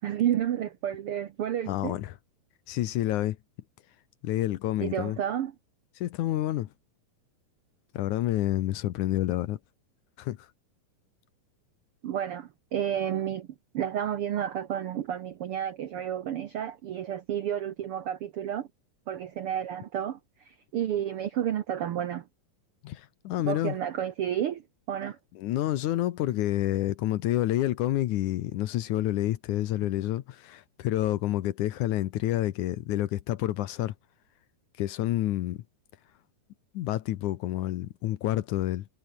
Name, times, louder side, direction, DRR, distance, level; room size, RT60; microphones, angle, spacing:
voice 1, 0.0-2.0 4.8-5.5 12.0-13.5 13.7-18.7 19.1-22.2 23.5-24.6 24.9-25.2, right 10 dB, 80° right, 1.2 m, -31 dB
voice 2, 1.7-2.1 2.7-3.4 4.2-5.2 6.0-6.7 7.9-9.6 10.2-10.4 22.8-23.8 25.4-33.9 34.8-35.6 36.7-38.9, left 14 dB, 70° left, 2.2 m, -28 dB
omnidirectional pair, 4.0 m